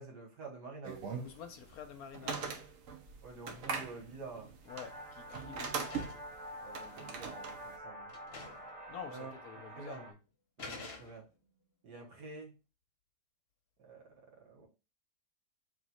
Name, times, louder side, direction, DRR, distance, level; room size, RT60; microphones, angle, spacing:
voice 1, 0.0-1.0 3.2-4.5 6.6-8.1 9.1-9.3 9.8-10.1 10.6-11.3 11.8-12.6 13.8-14.7, right 3 dB, 80° right, 2.0 m, -48 dB
sound 1, 0.8-7.8, right 5 dB, 60° right, 1.1 m, -42 dB
voice 2, 1.2-2.5 4.7-5.9 8.9-10.2, left 7 dB, 70° left, 1.0 m, -48 dB
sound 2, 4.4-4.7 5.0-6.4 7.3-7.4 7.7-7.8 8.1-8.8 9.0-9.1 9.9-10.1 10.6-11.5, left 3 dB, 45° left, 1.0 m, -49 dB
sound 3, 4.7-10.1, equal, 30° right, 0.9 m, -48 dB
3.7 x 3.1 x 4.1 m
omnidirectional pair, 1.8 m